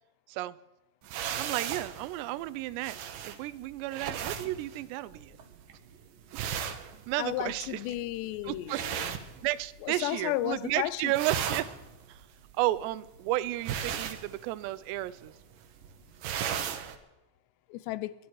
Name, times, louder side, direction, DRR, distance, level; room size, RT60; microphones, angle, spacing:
sound 1, 1.0-10.0 10.3-10.7 11.0-17.0, right 8 dB, 65° right, 2.5 m, -37 dB
voice 1, 1.4-3.0 3.2-5.4 6.3-6.7 7.1-7.8 8.4-8.8 9.4-11.7 12.1-12.2 12.6-15.3, right 16 dB, 85° right, 2.8 m, -33 dB
voice 2, 7.2-9.1 9.8-11.1 17.7-18.1, left 15 dB, 90° left, 2.9 m, -33 dB
24.0 x 11.0 x 4.7 m
omnidirectional pair, 4.8 m